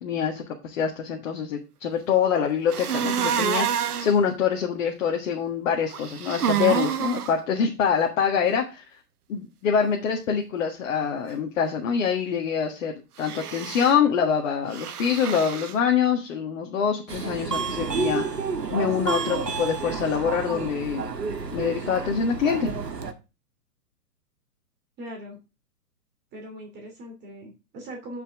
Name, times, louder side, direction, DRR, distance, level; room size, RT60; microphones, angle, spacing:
voice 1, 0.0-8.9 9.3-12.9 13.2-18.2 18.7-21.1 21.5-22.7, left 7 dB, 50° left, 2 dB, 1.7 m, -25 dB
sound 1, 2.7-4.1 5.9-7.3 13.2-13.9 14.7-15.7, right 8 dB, 70° right, 1.2 m, -27 dB
Subway metro underground, 17.1-23.1, right 5 dB, 85° right, 1.6 m, -30 dB
voice 2, 25.0-25.4 26.3-28.2, equal, 20° right, 1 dB, 2.9 m, -40 dB
9.3 x 5.8 x 3.6 m, 0.29 s
hypercardioid pair, 125°, 48 cm